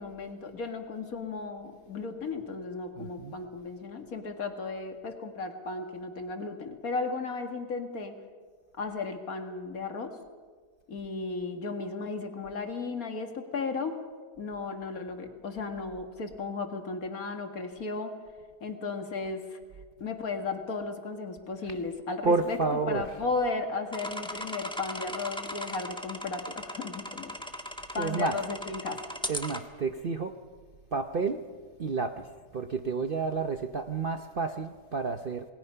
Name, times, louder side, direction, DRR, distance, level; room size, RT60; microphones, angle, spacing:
voice 1, 0.0-8.1 8.8-10.2 10.9-14.0 14.4-18.1 18.6-19.6 20.0-27.4 27.9-29.1, left 4 dB, 60° left, 5 dB, 2.2 m, -35 dB
voice 2, 3.0-3.3 22.2-23.0 28.0-28.4 29.3-30.3 30.9-31.4 31.8-32.3 32.5-35.5, right 4 dB, 45° right, 7 dB, 0.8 m, -30 dB
sound 1, 23.9-29.6, equal, 5° left, 1.2 m, -38 dB
28.0 x 20.0 x 5.6 m, 1.5 s
omnidirectional pair, 1.7 m